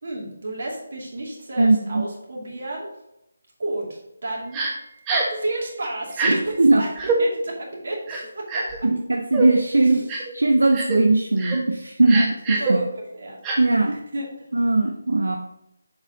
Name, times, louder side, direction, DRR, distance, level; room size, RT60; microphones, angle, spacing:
voice 1, 0.0-2.9 3.6-4.6 5.3-8.9 9.8-10.1 12.6-13.4 13.9-14.3, right 1 dB, 55° right, -2 dB, 2.5 m, -31 dB
voice 2, 1.6-2.0 6.3-6.8 8.8-10.1 10.3-12.8 13.6-14.0 14.5-15.4, right 2 dB, 75° right, 3 dB, 0.7 m, -19 dB
Crying sobbing, 4.5-4.7 5.1-5.4 6.1-6.3 7.0-7.2 8.1-8.8 9.3-9.5 10.1-10.3 10.7-11.0 11.4-11.6 12.1-12.7 13.4-13.6, right 3 dB, 15° right, 1.2 m, -25 dB
7.1 x 5.1 x 3.9 m, 0.84 s
figure-of-eight pair, 155°, 0 cm